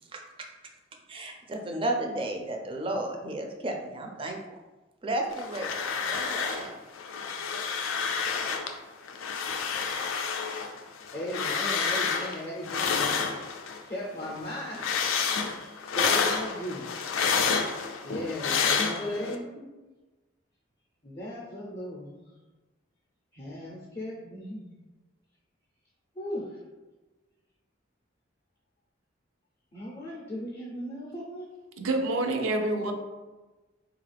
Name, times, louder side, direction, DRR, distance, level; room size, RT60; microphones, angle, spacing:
voice 1, 0.1-0.5 1.1-4.4 5.0-5.7 6.0-6.7, right 1 dB, 25° right, 2 dB, 0.4 m, -33 dB
sound 1, 5.3-6.7 7.0-8.7 9.1-13.8 14.2-19.4, left 5 dB, 85° left, 0.4 m, -29 dB
voice 2, 11.1-13.1 13.8-15.0 15.8-17.1 18.0-19.6 21.0-22.3 23.3-24.7 26.2-26.6 29.7-31.5, left 1 dB, 30° left, -4 dB, 0.5 m, -37 dB
voice 3, 31.8-32.9, right 2 dB, 85° right, 4 dB, 0.5 m, -27 dB
3.8 x 2.4 x 3.3 m, 1.2 s
head